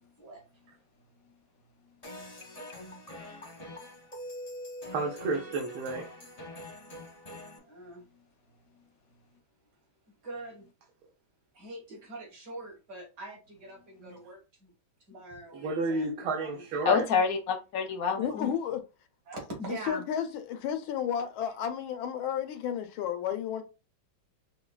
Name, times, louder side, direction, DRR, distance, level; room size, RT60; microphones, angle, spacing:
sound 1, 2.0-7.6, left 1 dB, 35° left, 0.6 m, -44 dB
voice 1, 4.9-6.1 7.3-7.4 14.0-14.2 15.5-17.0, right 3 dB, 85° right, 1.6 m, -32 dB
voice 2, 7.6-8.0 10.2-10.7 11.5-14.7 15.1-17.1 18.2-18.3 19.3-20.0, right 1 dB, 55° right, 2.2 m, -43 dB
voice 3, 16.8-18.5, left 6 dB, 65° left, 0.9 m, -27 dB
voice 4, 18.2-18.8 19.7-23.6, left 9 dB, 90° left, 1.5 m, -32 dB
5.8 x 2.2 x 2.3 m
omnidirectional pair, 2.2 m